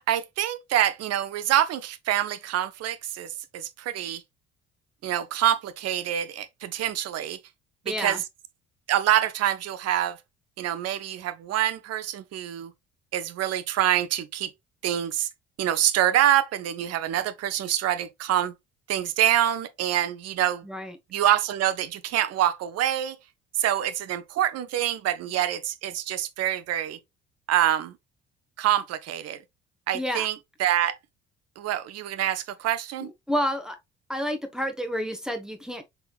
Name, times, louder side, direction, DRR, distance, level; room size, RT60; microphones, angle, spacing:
voice 1, 0.1-4.2 5.0-7.4 7.9-8.2 8.9-10.2 10.6-12.7 13.1-14.5 14.8-15.3 15.6-18.5 18.9-20.6 21.1-23.2 23.6-27.0 27.5-27.9 28.6-29.4 29.9-31.0 31.6-33.1, right 12 dB, 45° right, 0.7 m, -26 dB
voice 2, 7.8-8.2 20.6-20.9 29.9-30.3 33.3-33.8 34.1-35.8, equal, ahead, 1.2 m, -29 dB
5.7 x 3.8 x 2.4 m
figure-of-eight pair, 55°, 34 cm